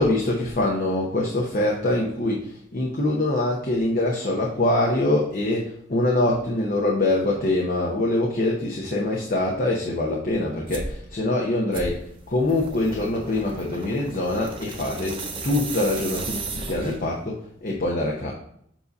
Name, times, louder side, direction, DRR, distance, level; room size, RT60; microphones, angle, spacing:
voice 1, 0.0-18.3, left 1 dB, 45° left, -2 dB, 0.8 m, -24 dB
sound 1, 10.7-11.0 11.7-17.1, right 3 dB, 30° right, 0.7 m, -34 dB
7.4 x 2.7 x 5.2 m, 0.70 s
head